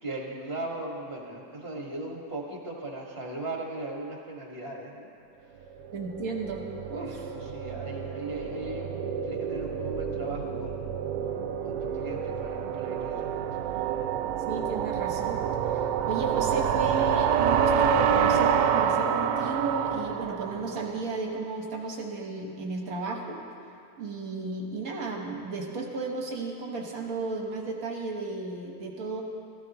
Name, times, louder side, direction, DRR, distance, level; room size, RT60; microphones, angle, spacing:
voice 1, 0.0-5.1 6.9-10.9 11.6-13.6, right 2 dB, 40° right, -2 dB, 1.9 m, -38 dB
sound 1, 5.8-21.1, right 7 dB, 85° right, 1.2 m, -28 dB
voice 2, 5.9-6.6 6.9-7.3 14.5-15.4 15.7-23.4 24.0-29.2, right 3 dB, 60° right, 1 dB, 1.6 m, -34 dB
16.0 x 14.5 x 3.0 m, 2.4 s
omnidirectional pair, 1.7 m